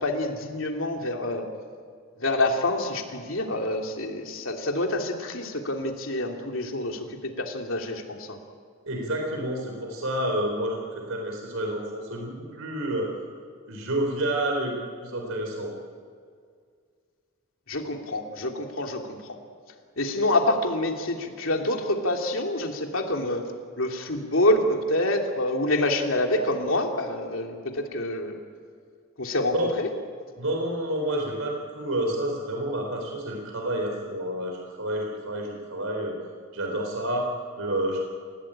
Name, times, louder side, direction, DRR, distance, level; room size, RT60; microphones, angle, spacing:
voice 1, 0.0-1.5 2.2-8.4 17.7-19.3 20.0-23.5 23.8-28.4 29.2-29.9, left 1 dB, 70° left, 3 dB, 3.0 m, -27 dB
voice 2, 8.9-13.1 13.7-14.8 15.0-15.7 29.5-29.7 30.4-36.2 36.5-38.0, right 1 dB, 80° right, 1 dB, 4.0 m, -29 dB
29.5 x 17.0 x 8.9 m, 2.1 s
head